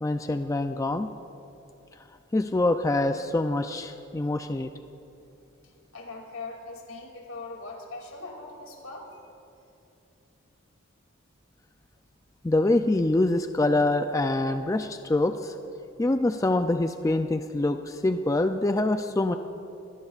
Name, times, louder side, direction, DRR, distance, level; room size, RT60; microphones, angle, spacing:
voice 1, 0.0-1.1 2.3-4.7 12.4-15.5 16.0-19.4, left 2 dB, 15° left, 7 dB, 0.3 m, -25 dB
voice 2, 5.9-9.2, left 3 dB, 85° left, 1 dB, 2.6 m, -40 dB
25.0 x 18.5 x 2.4 m, 2.7 s
head